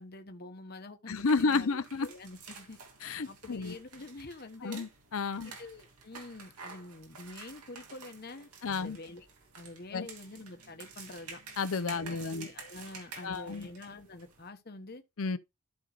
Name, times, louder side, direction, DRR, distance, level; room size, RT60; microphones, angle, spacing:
voice 1, 0.0-2.8 3.3-4.9 5.4-9.3 9.5-11.4 11.9-15.0, left 2 dB, 45° left, 1.1 m, -47 dB
voice 2, 1.1-2.1 3.0-3.7 4.6-5.5 8.6-9.0 9.9-10.1 11.6-12.5 13.2-13.7 15.2-15.4, left 4 dB, 70° left, 0.6 m, -31 dB
sound 1, 1.2-14.5, right 5 dB, 90° right, 2.6 m, -50 dB
13.5 x 5.5 x 2.4 m
head